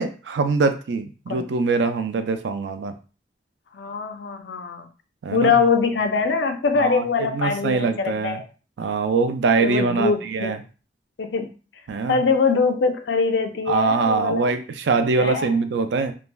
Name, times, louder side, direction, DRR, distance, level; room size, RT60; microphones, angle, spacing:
voice 1, 0.0-2.9 5.2-5.6 6.8-7.0 7.3-8.4 8.8-10.6 11.9-12.2 13.7-16.1, right 4 dB, 80° right, 9 dB, 0.4 m, -23 dB
voice 2, 3.7-4.9 5.3-8.5 9.6-10.5 11.2-11.5 12.1-14.5 15.2-15.5, left 5 dB, 85° left, 6 dB, 0.4 m, -23 dB
3.1 x 2.4 x 2.2 m, 0.35 s
head